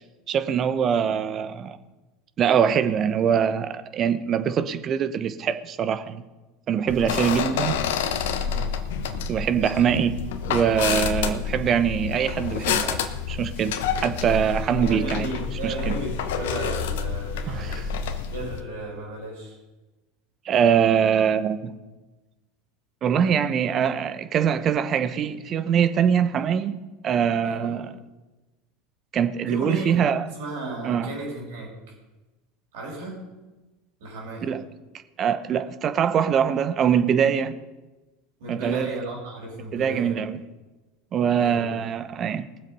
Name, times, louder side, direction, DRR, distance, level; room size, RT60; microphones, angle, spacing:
voice 1, 0.3-1.8 2.4-6.2 6.7-7.7 9.3-10.2 10.5-13.8 14.0-15.3 15.6-15.9 17.5-17.8 20.4-21.7 23.0-27.9 29.1-30.2 30.8-31.1 34.4-34.6 35.2-37.5 38.5-38.9 39.7-40.4 41.1-42.5, right 8 dB, 40° right, 12 dB, 1.0 m, -23 dB
sound 1, 6.9-18.6, left 6 dB, 70° left, 1.1 m, -28 dB
voice 2, 8.4-8.7 14.8-17.8 18.2-19.6 27.4-27.7 29.5-30.0 30.3-31.7 32.7-33.2 34.0-34.5 38.4-40.2 41.3-41.7, right 2 dB, 70° right, -2 dB, 5.8 m, -34 dB
19.5 x 7.6 x 5.5 m, 1.1 s
hypercardioid pair, 80°, 0 cm